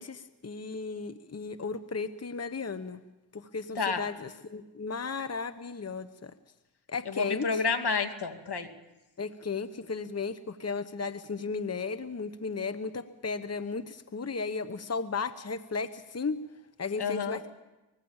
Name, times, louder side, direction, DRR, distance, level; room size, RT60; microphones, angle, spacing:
voice 1, 0.0-3.0 3.3-6.3 6.9-7.6 9.2-16.4 16.8-17.5, left 4 dB, 35° left, 11 dB, 1.2 m, -35 dB
voice 2, 3.8-4.1 7.1-8.7 17.0-17.4, left 5 dB, 60° left, 7 dB, 2.4 m, -30 dB
24.5 x 20.5 x 7.3 m, 1.1 s
cardioid pair, 50°, 45 cm